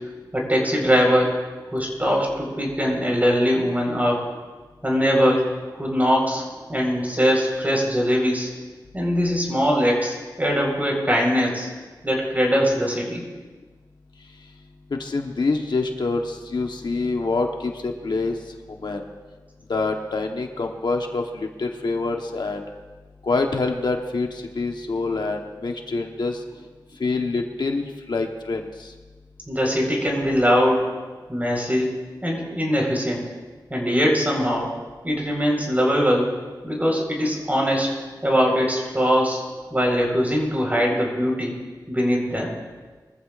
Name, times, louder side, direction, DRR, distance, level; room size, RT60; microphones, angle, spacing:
voice 1, 0.3-1.4 1.7-4.2 4.8-5.5 5.7-6.4 6.7-8.5 8.9-11.7 12.0-13.2 29.5-30.9 31.3-31.9 32.2-33.2 33.7-34.7 35.0-36.3 36.6-37.9 38.2-39.4 39.7-41.5 41.9-42.6, equal, 20° right, -1 dB, 4.3 m, -21 dB
voice 2, 14.9-18.4 18.7-19.0 19.7-22.6 23.2-26.4 27.0-28.9, left 3 dB, 70° left, 3 dB, 1.1 m, -26 dB
22.0 x 14.5 x 2.5 m, 1.3 s
wide cardioid pair, 95°, 8 cm